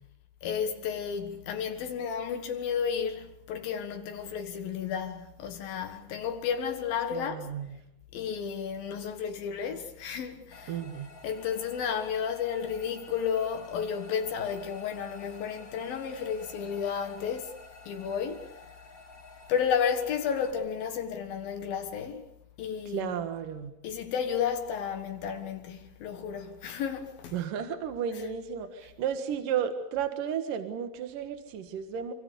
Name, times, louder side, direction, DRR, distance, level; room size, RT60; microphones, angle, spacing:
voice 1, 0.4-7.4 8.1-10.8 11.2-17.5 17.9-18.4 19.5-22.2 22.6-23.2 23.8-27.4 28.2-28.3, left 7 dB, 80° left, 3.4 m, -32 dB
voice 2, 7.1-7.7 10.7-11.1 22.9-23.7 27.3-32.1, right 8 dB, 70° right, 3.2 m, -33 dB
sound 1, 10.5-20.5, left 3 dB, 30° left, 1.7 m, -51 dB
26.0 x 24.5 x 6.9 m
omnidirectional pair, 4.1 m